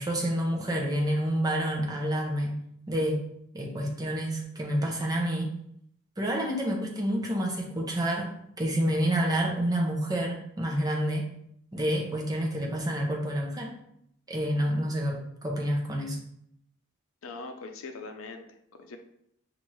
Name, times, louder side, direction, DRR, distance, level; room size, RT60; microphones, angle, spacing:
voice 1, 0.0-2.6 2.9-3.2 3.5-5.5 6.2-8.3 8.6-11.3 11.7-13.7 14.3-16.2, equal, 20° right, -1 dB, 0.7 m, -28 dB
voice 2, 17.2-19.0, left 3 dB, 80° left, 6 dB, 0.6 m, -42 dB
5.7 x 2.5 x 3.1 m, 0.72 s
head